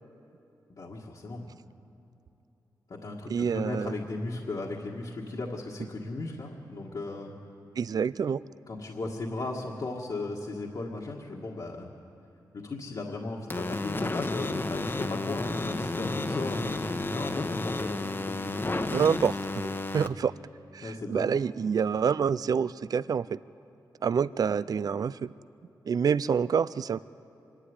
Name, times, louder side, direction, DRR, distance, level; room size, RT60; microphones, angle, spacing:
voice 1, 0.8-1.5 2.9-7.4 8.7-11.9 12.5-19.0 20.8-21.3, left 2 dB, 55° left, -3 dB, 1.7 m, -36 dB
voice 2, 3.3-3.9 7.8-8.4 18.9-19.4 19.9-20.3 20.7-23.4 24.0-25.3 25.9-27.0, right 6 dB, 55° right, 18 dB, 0.4 m, -27 dB
sound 1, 13.5-20.1, left 2 dB, 30° left, 1.0 m, -31 dB
25.0 x 11.5 x 9.7 m, 3.0 s
cardioid pair, 85°, 8 cm